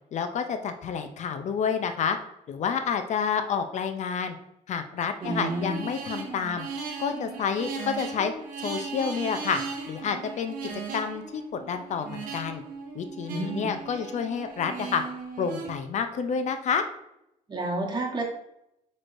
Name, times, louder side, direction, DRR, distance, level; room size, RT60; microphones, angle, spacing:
voice 1, 0.1-2.2 2.5-4.4 4.7-6.7 7.0-8.3 8.6-9.6 9.9-10.5 10.9-12.6 12.9-15.0 15.4-16.8, left 6 dB, 55° left, 8 dB, 0.5 m, -29 dB
voice 2, 5.2-5.8 13.3-13.7 17.5-18.2, right 2 dB, 30° right, 0 dB, 1.2 m, -30 dB
sound 1, 5.2-15.8, right 5 dB, 75° right, 0.9 m, -37 dB
6.0 x 3.1 x 2.5 m, 0.82 s
cardioid pair, 90°, 14 cm